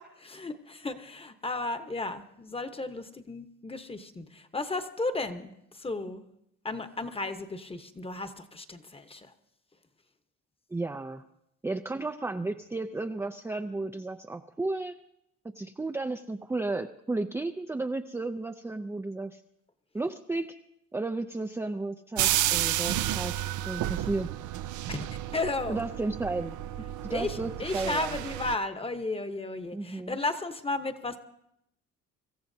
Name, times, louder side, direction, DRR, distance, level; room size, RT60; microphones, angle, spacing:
voice 1, 0.2-6.2 6.6-9.3 24.9-25.1 25.3-25.8 27.1-31.2, left 2 dB, 20° left, 9 dB, 1.0 m, -34 dB
voice 2, 10.7-11.2 11.6-15.0 15.4-19.4 19.9-20.6 20.9-23.4 23.7-24.3 25.7-26.6 27.0-28.1 29.7-30.2, right 2 dB, 10° right, 6 dB, 0.4 m, -33 dB
sound 1, 22.2-28.6, right 13 dB, 75° right, 0.5 m, -31 dB
25.5 x 14.0 x 2.7 m, 0.78 s
cardioid pair, 90°, 30 cm